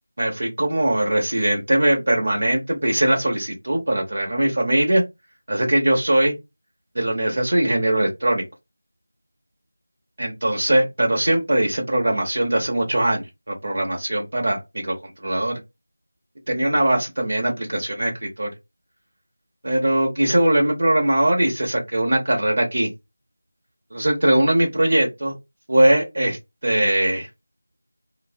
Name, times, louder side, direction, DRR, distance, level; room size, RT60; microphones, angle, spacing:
voice 1, 0.2-5.0 5.5-6.3 6.9-8.4 10.2-15.6 16.5-18.5 19.6-22.9 23.9-25.3 25.7-26.4 26.6-27.3, right 1 dB, 55° right, 0.8 m, -21 dB
2.6 x 2.0 x 2.6 m
figure-of-eight pair, 170°, 0 cm